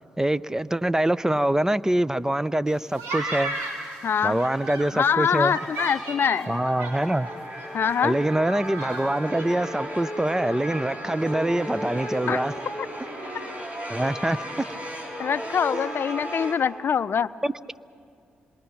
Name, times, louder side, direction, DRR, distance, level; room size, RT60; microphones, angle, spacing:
voice 1, 0.2-3.5 4.2-5.5 6.5-7.3 8.0-12.5 13.9-14.4 15.9-16.0 17.4-17.5, right 1 dB, 15° right, 17 dB, 0.6 m, -24 dB
sound 1, 2.7-4.9 5.4-7.3 7.6-7.7 7.9-9.0 9.3-9.5, right 2 dB, 80° right, 3.6 m, -34 dB
voice 2, 4.0-4.4 4.9-6.6 7.7-8.2 12.3-12.5 15.2-17.3, left 7 dB, 55° left, 16 dB, 0.5 m, -24 dB
sound 2, 5.4-16.6, equal, 30° right, 4.3 m, -35 dB
26.5 x 22.0 x 6.0 m, 2.5 s
hypercardioid pair, 45°, 4 cm